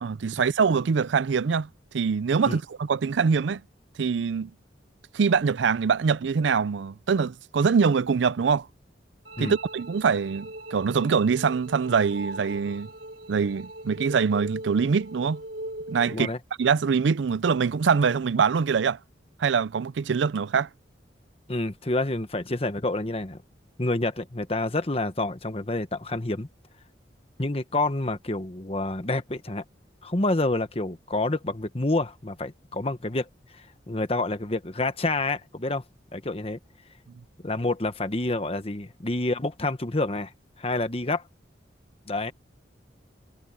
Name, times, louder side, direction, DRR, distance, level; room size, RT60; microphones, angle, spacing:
voice 1, 0.0-1.7 1.9-3.6 4.0-4.5 5.1-8.7 9.4-12.9 13.3-15.4 15.9-16.3 16.6-19.0 19.4-20.7, right 5 dB, 80° right, 0.5 m, -24 dB
sound 1, 9.2-16.2, right 1 dB, 60° right, 4.3 m, -39 dB
voice 2, 21.5-23.4 23.8-26.5 27.4-29.6 30.0-33.3 33.5-35.8 36.1-36.6 37.4-40.3 40.6-41.2 42.1-42.3, left 2 dB, 30° left, 1.3 m, -28 dB
head